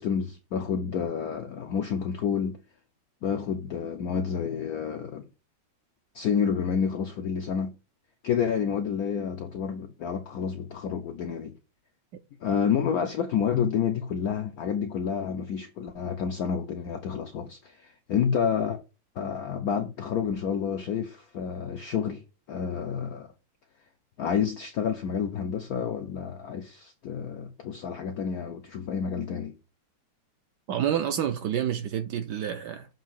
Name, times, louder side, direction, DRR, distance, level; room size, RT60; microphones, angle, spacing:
voice 1, 0.0-2.6 3.2-5.3 6.1-7.7 8.2-11.5 12.4-18.8 19.2-22.2 22.5-23.3 24.2-29.5, left 7 dB, 75° left, 0.8 m, -29 dB
voice 2, 30.7-32.9, right 9 dB, 70° right, 1.0 m, -28 dB
7.5 x 2.7 x 5.3 m
omnidirectional pair, 2.2 m